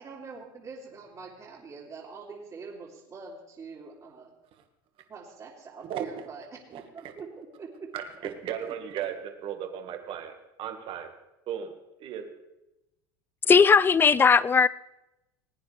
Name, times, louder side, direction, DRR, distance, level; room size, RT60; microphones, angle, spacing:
voice 1, 0.0-4.3 5.1-7.9 8.2-8.3, right 4 dB, 30° right, 2.9 m, -44 dB
voice 2, 7.9-10.3 10.6-11.1 11.5-11.7 12.0-12.3, right 9 dB, 50° right, 1.7 m, -35 dB
voice 3, 13.5-14.7, left 6 dB, 20° left, 0.4 m, -18 dB
20.0 x 9.4 x 3.4 m
hypercardioid pair, 95°, 11 cm